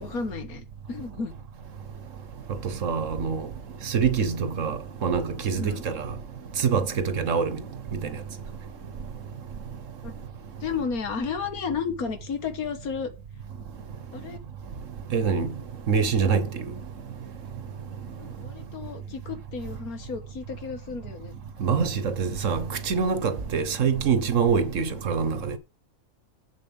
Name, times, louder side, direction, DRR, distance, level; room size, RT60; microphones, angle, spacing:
voice 1, 0.0-1.3 5.6-5.8 10.0-10.1 10.6-13.1 14.1-14.4 18.2-21.3, left 5 dB, 85° left, 1.9 m, -33 dB
voice 2, 2.8-3.4 3.9-4.8 5.0-6.0 6.6-7.6 15.1-15.5 15.9-16.4 21.6-25.6, right 6 dB, 60° right, 1.4 m, -24 dB
7.5 x 7.1 x 7.3 m
omnidirectional pair, 1.5 m